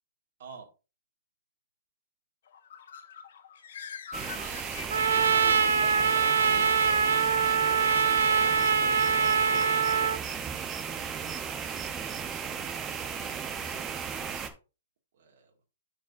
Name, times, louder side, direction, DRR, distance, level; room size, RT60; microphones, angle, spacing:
Bird, 2.5-5.5, left 7 dB, 55° left, 1.0 m, -44 dB
sound 1, 4.1-14.5, right 7 dB, 15° right, 0.7 m, -36 dB
voice 1, 4.4-6.8 10.0-10.4 15.2-15.7, right 6 dB, 45° right, 2 dB, 2.0 m, -47 dB
Trumpet, 4.9-10.2, right 6 dB, 85° right, 0.7 m, -24 dB
11.5 x 4.9 x 2.6 m, 0.30 s
hypercardioid pair, 175°, 0 cm